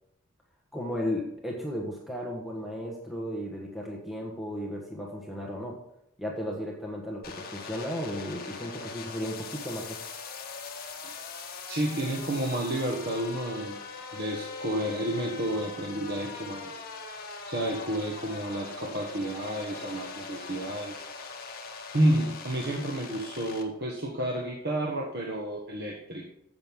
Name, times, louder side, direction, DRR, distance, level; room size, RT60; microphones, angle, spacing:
voice 1, 0.7-5.8 6.2-10.0, equal, ahead, -1 dB, 1.3 m, -35 dB
sound 1, 7.2-23.6, left 4 dB, 45° left, 1.7 m, -41 dB
voice 2, 11.7-13.8 14.1-16.8 17.5-21.0 21.9-26.3, right 1 dB, 50° right, -1 dB, 1.5 m, -30 dB
10.5 x 7.9 x 3.7 m, 0.82 s
head